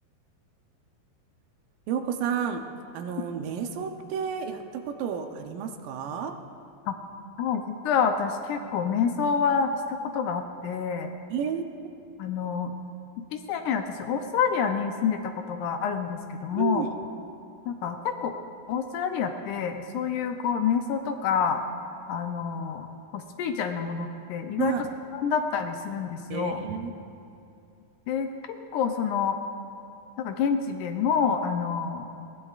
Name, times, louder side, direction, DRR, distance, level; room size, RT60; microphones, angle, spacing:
voice 1, 1.9-2.6 2.9-6.3 11.3-11.6 16.5-16.9 24.6-24.9 26.3-26.9, right 7 dB, 80° right, 5 dB, 2.4 m, -31 dB
voice 2, 7.4-11.1 12.2-12.7 13.3-16.9 17.7-18.3 18.7-21.6 22.1-22.9 23.1-24.7 25.2-26.6 28.1-29.4 30.2-32.0, left 6 dB, 75° left, 6 dB, 1.9 m, -27 dB
21.0 x 16.5 x 2.4 m, 2.7 s
omnidirectional pair, 3.9 m